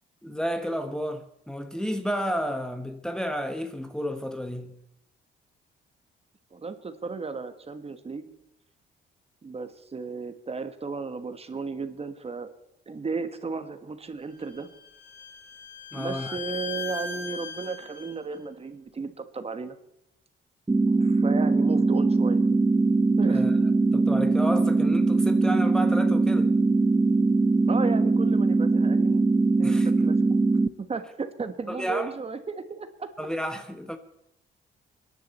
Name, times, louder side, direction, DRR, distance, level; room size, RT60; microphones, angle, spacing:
voice 1, 0.2-4.8 15.9-16.4 23.3-23.5 23.9-26.5 29.6-30.1 31.7-32.2 33.2-34.0, equal, 5° left, 1.1 m, -31 dB
voice 2, 6.5-8.3 9.4-12.5 12.9-14.7 15.9-19.7 21.0-22.4 23.2-23.5 27.7-29.2 29.6-29.7 30.0-30.2 30.8-33.1, right 4 dB, 30° right, 1.4 m, -34 dB
Bowed string instrument, 14.3-18.1, left 5 dB, 45° left, 5.2 m, -38 dB
sound 1, 20.7-30.7, right 3 dB, 15° right, 0.6 m, -21 dB
22.5 x 10.5 x 4.2 m
cardioid pair, 90°, 20 cm